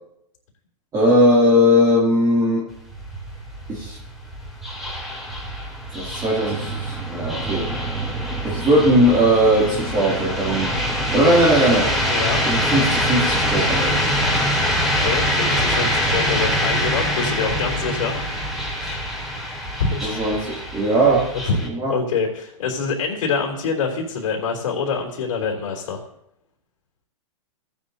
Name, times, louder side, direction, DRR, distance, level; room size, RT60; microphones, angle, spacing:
voice 1, 0.9-2.6 3.7-4.0 5.9-7.7 8.4-10.8 11.1-11.9 12.5-14.0 20.0-21.3 21.7-21.9, equal, 20° right, -5 dB, 2.7 m, -18 dB
sound 1, 2.7-21.7, equal, ahead, 3.3 m, -24 dB
voice 2, 12.0-12.4 15.0-18.2 18.8-19.1 19.8-20.2 20.5-20.6 21.4-21.6 21.9-26.0, left 5 dB, 70° left, 0 dB, 3.4 m, -25 dB
17.0 x 10.5 x 2.8 m, 0.75 s
hypercardioid pair, 140°, 18 cm